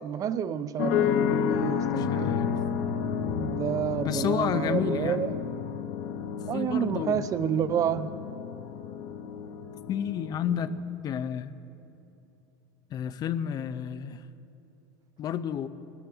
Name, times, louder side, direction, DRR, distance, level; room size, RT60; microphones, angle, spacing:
voice 1, 0.0-2.4 3.4-5.3 6.5-8.1, right 9 dB, 30° right, 0.5 m, -29 dB
sound 1, 0.8-10.8, left 7 dB, 55° left, 0.9 m, -31 dB
voice 2, 2.0-2.5 4.0-5.3 6.5-7.2 9.9-10.7 11.0-11.6 12.9-14.2 15.2-15.7, left 9 dB, 35° left, 0.6 m, -31 dB
21.5 x 13.5 x 3.6 m
supercardioid pair, 125°, 12 cm